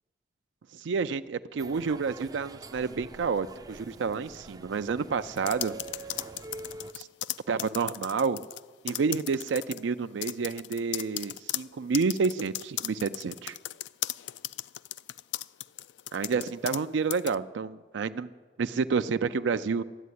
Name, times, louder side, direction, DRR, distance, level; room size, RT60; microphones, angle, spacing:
voice 1, 0.7-5.8 6.9-7.1 7.5-8.4 8.8-13.6 16.1-18.3 18.6-19.8, right 5 dB, 85° right, 11 dB, 0.4 m, -29 dB
sound 1, 1.6-6.9, right 3 dB, 20° right, 0.4 m, -45 dB
sound 2, 5.4-8.6 8.9-9.8 10.2-16.8 17.1-17.3, left 15 dB, 70° left, 0.3 m, -36 dB
12.5 x 8.4 x 9.6 m, 1.4 s
head